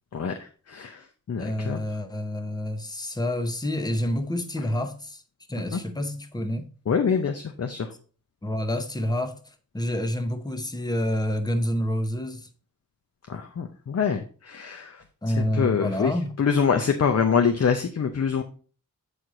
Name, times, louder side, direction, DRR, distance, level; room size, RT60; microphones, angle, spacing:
voice 1, 0.1-1.8 4.6-4.7 5.7-5.8 6.9-7.9 13.3-18.4, left 6 dB, 45° left, 0.7 m, -25 dB
voice 2, 1.4-5.2 5.5-6.7 8.4-9.4 9.7-12.5 15.2-16.3, left 1 dB, 10° left, 0.8 m, -28 dB
8.2 x 4.6 x 3.8 m
wide cardioid pair, 125°, 35 cm